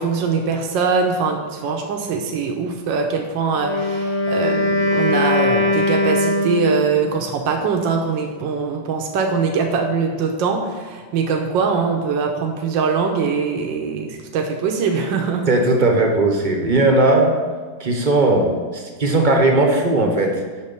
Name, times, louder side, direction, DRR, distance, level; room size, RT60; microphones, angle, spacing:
voice 1, 0.0-15.5, right 5 dB, 80° right, 3 dB, 1.5 m, -22 dB
Wind instrument woodwind instrument, 3.5-7.0, left 1 dB, 75° left, 1.8 m, -20 dB
voice 2, 15.5-17.3 17.8-20.4, right 2 dB, 35° right, 2 dB, 0.8 m, -17 dB
7.5 x 6.2 x 5.3 m, 1.5 s
omnidirectional pair, 2.0 m